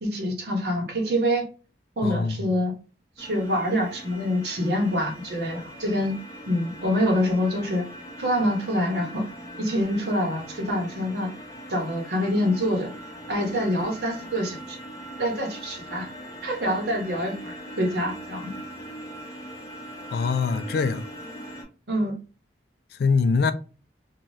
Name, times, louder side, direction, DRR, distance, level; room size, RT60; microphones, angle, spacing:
voice 1, 0.0-1.4 2.0-2.7 3.2-6.2 6.5-7.8 8.2-9.2 9.6-11.3 11.7-12.9 13.3-14.8 15.2-16.1 16.4-18.5 21.9-22.1, equal, 65° right, 0.9 m, -26 dB
voice 2, 2.0-2.4 20.1-21.0 23.0-23.5, left 5 dB, 60° left, 0.3 m, -23 dB
sound 1, 3.2-21.6, equal, 20° left, 0.8 m, -41 dB
2.6 x 2.2 x 3.1 m
head